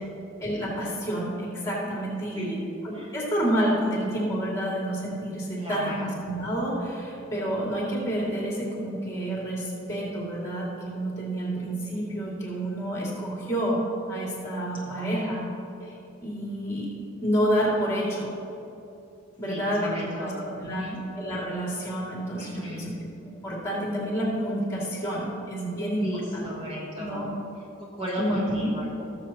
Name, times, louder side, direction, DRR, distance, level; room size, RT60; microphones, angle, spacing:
voice 1, 0.4-2.5 2.8-13.8 14.1-15.4 15.8-16.9 17.2-18.4 19.4-20.9 21.1-22.9 23.2-26.5 27.0-27.3 28.2-28.7, right 1 dB, 15° left, -5 dB, 2.4 m, -29 dB
voice 2, 2.3-2.6 2.9-3.1 5.6-6.1 14.8-15.2 19.5-21.0 22.4-22.9 26.0-27.4 27.8-29.1, equal, 25° right, -5 dB, 1.3 m, -34 dB
17.5 x 7.2 x 2.9 m, 2.8 s
head